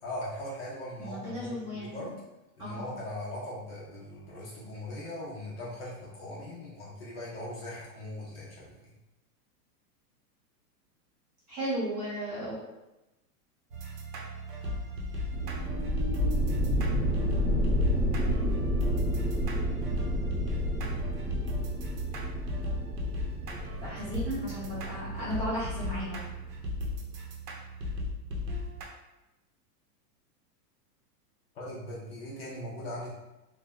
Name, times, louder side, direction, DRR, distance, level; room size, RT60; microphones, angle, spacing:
voice 1, 0.0-2.1 2.6-8.9 31.5-33.1, left 1 dB, 40° left, -6 dB, 0.5 m, -40 dB
voice 2, 1.0-2.1 2.6-2.9 11.5-12.6 23.8-26.2, equal, 25° right, -9 dB, 0.5 m, -35 dB
sound 1, 13.7-28.8, left 1 dB, 85° right, 0.8 m, -37 dB
sound 2, 15.3-26.8, equal, 5° right, 1.0 m, -30 dB
2.9 x 2.0 x 2.2 m, 0.98 s
supercardioid pair, 175°, 47 cm